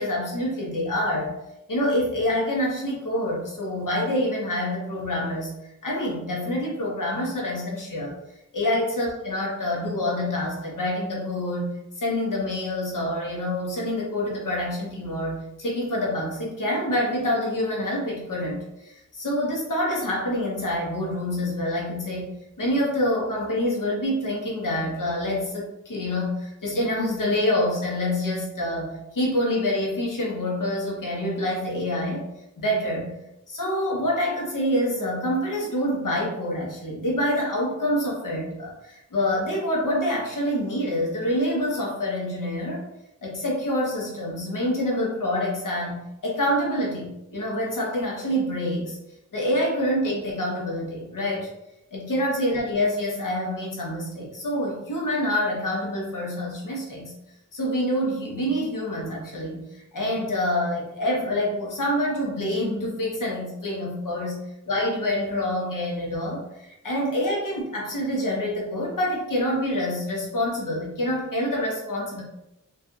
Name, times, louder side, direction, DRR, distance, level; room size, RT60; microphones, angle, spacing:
voice 1, 0.0-1.3 1.7-5.5 5.8-8.2 8.5-11.7 12.0-22.3 22.6-32.2 32.6-33.1 33.5-42.8 43.2-49.0 49.3-51.5 51.9-57.1 57.5-64.4 64.7-72.2, left 1 dB, 80° left, -2 dB, 1.0 m, -26 dB
4.1 x 2.6 x 2.4 m, 0.88 s
wide cardioid pair, 95°, 32 cm